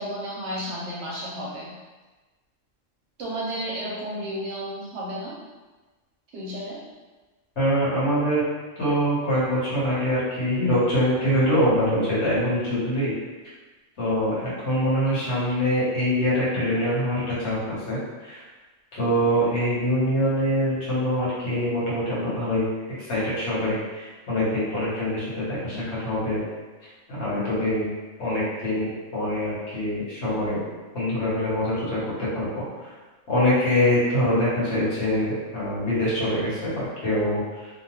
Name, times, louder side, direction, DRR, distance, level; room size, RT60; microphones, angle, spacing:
voice 1, 0.0-1.7 3.2-5.4 6.3-6.8, equal, 65° right, -5 dB, 0.9 m, -32 dB
voice 2, 7.6-8.4 8.8-13.1 14.0-18.4 18.9-22.7 23.0-26.4 26.8-27.9 28.2-30.6 30.9-32.9 33.3-37.7, equal, 60° left, -9 dB, 1.3 m, -24 dB
2.8 x 2.2 x 2.9 m, 1.2 s
omnidirectional pair, 1.4 m